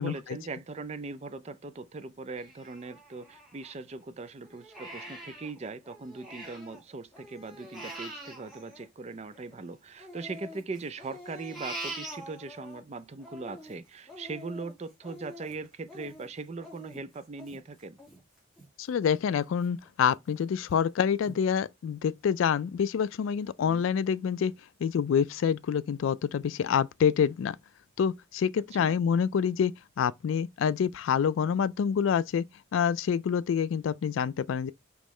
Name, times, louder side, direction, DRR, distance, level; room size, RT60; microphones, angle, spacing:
voice 1, 0.0-18.0 23.6-23.8 28.8-29.0, right 3 dB, 30° right, 0.4 m, -40 dB
Crying sobbing, 2.4-4.0 4.4-6.8 7.1-9.5 10.0-12.8 13.2-18.7 19.1-19.2 19.6-20.2 20.7-20.8 21.2-21.4, right 1 dB, ahead, 1.9 m, -45 dB
voice 2, 18.8-24.5 24.8-27.6 28.0-29.7 30.0-32.5 32.7-34.7, left 7 dB, 75° left, 0.3 m, -27 dB
5.3 x 3.1 x 3.1 m
head